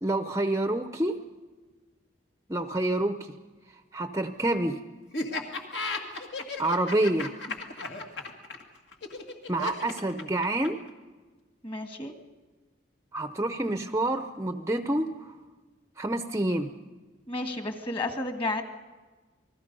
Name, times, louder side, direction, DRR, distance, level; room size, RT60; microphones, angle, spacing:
voice 1, 0.0-1.2 2.5-3.3 3.9-4.8 6.6-7.3 9.5-10.8 13.1-15.3 16.0-16.7, right 1 dB, 15° right, 9 dB, 0.6 m, -28 dB
Laughter, 5.1-10.9, left 3 dB, 65° left, 2.1 m, -34 dB
voice 2, 11.6-12.1 17.3-18.6, left 2 dB, 30° left, 6 dB, 1.7 m, -32 dB
28.5 x 20.5 x 5.4 m, 1.3 s
head